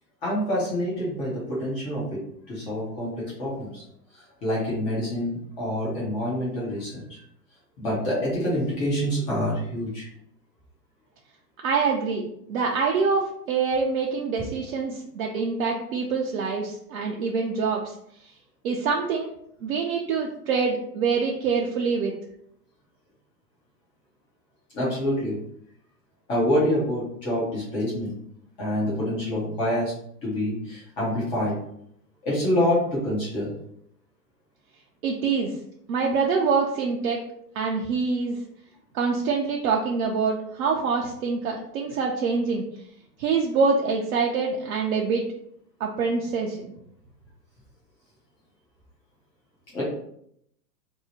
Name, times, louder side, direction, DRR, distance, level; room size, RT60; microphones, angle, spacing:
voice 1, 0.2-2.2 2.5-3.8 4.1-7.2 7.8-10.1 24.7-25.4 26.3-28.1 28.6-29.9 30.2-31.6 32.2-33.5 49.7-49.8, left 1 dB, 10° left, -6 dB, 0.4 m, -26 dB
voice 2, 11.6-17.9 18.6-19.3 19.6-22.1 35.0-35.6 35.9-37.2 37.6-38.4 38.9-42.6 43.2-45.2 45.8-46.7, right 5 dB, 60° right, -1 dB, 0.6 m, -25 dB
2.7 x 2.0 x 4.0 m, 0.72 s
hypercardioid pair, 125°, 50 cm